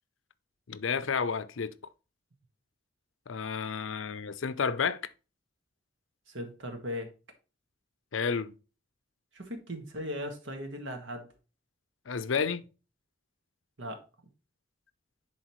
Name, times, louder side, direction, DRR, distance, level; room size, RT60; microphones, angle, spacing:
voice 1, 0.7-1.7 3.3-5.1 8.1-8.5 12.1-12.6, left 6 dB, 90° left, 0.6 m, -31 dB
voice 2, 6.3-7.1 9.3-11.3 13.8-14.0, equal, 75° right, 1.6 m, -38 dB
10.5 x 4.0 x 3.1 m
head